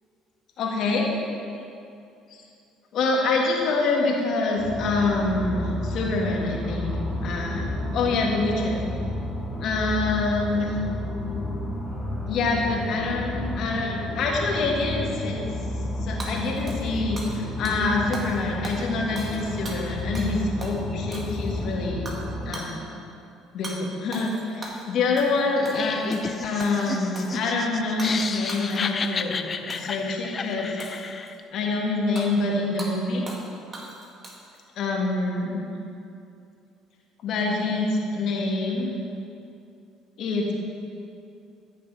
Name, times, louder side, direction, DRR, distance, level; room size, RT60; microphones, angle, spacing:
voice 1, 0.6-1.1 2.9-7.0 7.2-8.9 9.6-10.8 12.3-15.5 16.0-22.0 22.5-22.8 23.5-30.7 31.5-33.3 34.8-35.6 37.2-38.9 40.2-40.5, left 3 dB, 60° left, -1 dB, 1.7 m, -26 dB
sound 1, 4.6-22.5, left 1 dB, ahead, 2.3 m, -31 dB
Hammer / Shatter, 16.2-17.4 17.6-17.8 18.1-18.4 18.6-20.3 20.6-20.8 21.1-21.6 22.1-22.2 22.5-22.7 23.6-23.8 24.1-24.9 25.2-25.4 25.6-26.3 26.6-27.4 28.0-28.2 28.5-29.1 29.7-30.0 30.8-31.4 32.2-32.3 32.8-32.9 33.3-33.5 33.7-34.6, right 1 dB, 30° right, 1.9 m, -39 dB
Laughter, 25.6-31.4, left 5 dB, 40° left, 0.5 m, -32 dB
14.0 x 6.7 x 3.4 m, 2.6 s
hypercardioid pair, 65°, 0 cm